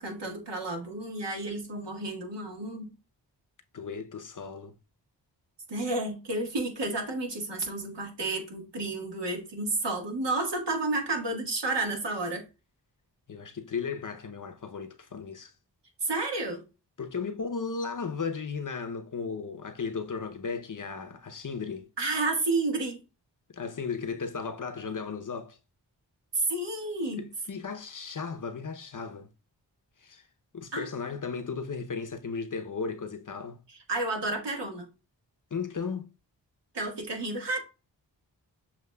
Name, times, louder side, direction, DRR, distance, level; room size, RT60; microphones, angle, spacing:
voice 1, 0.0-2.9 5.7-12.4 16.0-16.6 22.0-23.0 26.3-27.3 30.7-30.9 33.9-34.9 36.7-37.6, right 2 dB, 70° right, 1.7 m, -31 dB
voice 2, 3.7-4.7 13.3-15.5 17.0-21.9 23.5-25.6 27.1-29.3 30.0-30.3 30.5-33.6 35.5-36.1, left 5 dB, 45° left, 0.8 m, -35 dB
6.8 x 2.9 x 2.3 m
cardioid pair, 40°, 43 cm